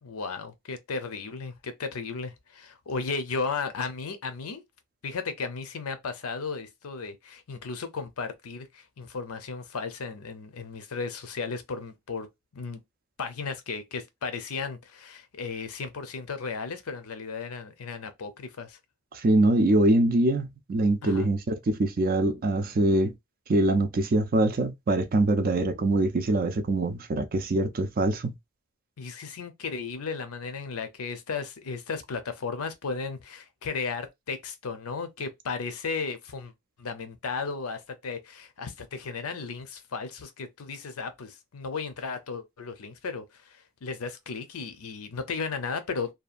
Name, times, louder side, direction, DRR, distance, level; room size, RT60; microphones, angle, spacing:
voice 1, 0.0-4.6 5.0-12.3 12.5-12.8 13.2-18.8 21.0-21.3 29.0-36.5 36.8-46.1, left 4 dB, 75° left, 0.6 m, -35 dB
voice 2, 19.1-23.1 23.5-28.3, right 2 dB, 40° right, 0.4 m, -24 dB
2.7 x 2.3 x 2.4 m
head